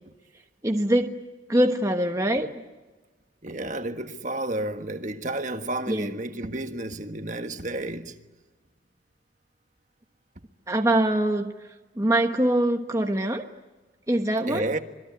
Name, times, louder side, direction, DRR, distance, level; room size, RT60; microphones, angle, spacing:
voice 1, 0.6-1.2 1.5-2.5 5.9-6.2 10.7-11.5 12.0-13.5 14.1-14.7, right 1 dB, 15° right, 1.2 m, -23 dB
voice 2, 3.4-8.1 14.5-14.8, right 1 dB, 40° right, 1.5 m, -31 dB
26.5 x 21.0 x 9.4 m
head